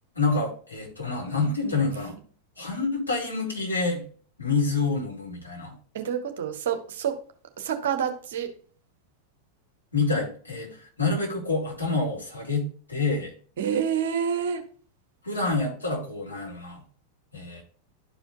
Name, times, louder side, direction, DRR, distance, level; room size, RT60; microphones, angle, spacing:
voice 1, 0.2-2.1 2.6-4.0 4.4-5.7 9.9-13.3 15.2-16.8 17.3-17.6, left 3 dB, 80° left, -1 dB, 2.3 m, -27 dB
voice 2, 5.9-7.1 7.6-8.5 13.6-14.6, right 8 dB, 60° right, 7 dB, 1.0 m, -28 dB
11.5 x 4.8 x 2.7 m, 0.43 s
figure-of-eight pair, 90°, 0 cm